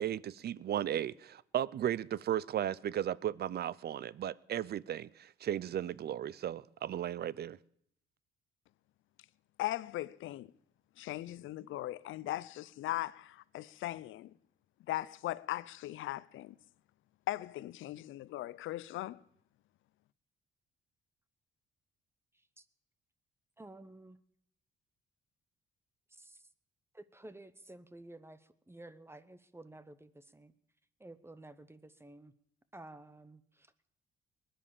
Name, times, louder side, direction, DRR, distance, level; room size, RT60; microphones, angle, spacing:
voice 1, 0.0-7.6, right 11 dB, 55° right, 0.5 m, -35 dB
voice 2, 9.6-10.5 11.0-14.3 14.9-16.5 17.3-19.2, left 15 dB, 80° left, 0.6 m, -39 dB
voice 3, 22.3-22.6 23.6-24.2 26.1-26.5 26.9-30.5 31.0-32.3 32.7-33.7, right 2 dB, 10° right, 0.9 m, -53 dB
19.5 x 10.5 x 7.2 m
cardioid pair, 90°, 20 cm